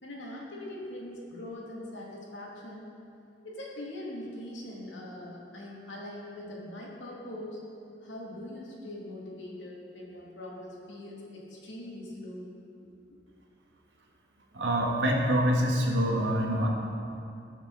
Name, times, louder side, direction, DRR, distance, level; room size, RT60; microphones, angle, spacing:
voice 1, 0.0-2.9 3.4-7.6 8.0-12.5, left 1 dB, 85° left, -4 dB, 2.8 m, -42 dB
voice 2, 14.5-16.7, equal, 80° right, -1 dB, 2.0 m, -25 dB
20.5 x 7.3 x 4.1 m, 2.7 s
head